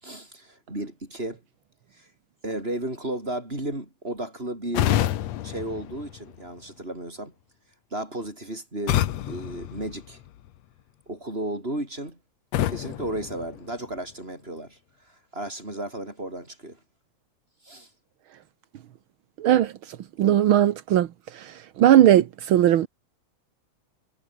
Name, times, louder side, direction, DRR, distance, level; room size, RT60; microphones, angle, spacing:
voice 1, 0.0-1.4 1.9-2.1 2.4-4.9 5.4-7.3 7.9-10.2 11.1-12.2 12.7-14.8 15.1-16.8 17.6-17.9, right 1 dB, 15° right, 7.6 m, -34 dB
sound 1, 4.7-6.7 8.9-10.6 12.5-14.1, left 12 dB, 65° left, 2.2 m, -28 dB
voice 2, 19.4-22.9, right 11 dB, 65° right, 1.3 m, -19 dB
omnidirectional pair, 3.5 m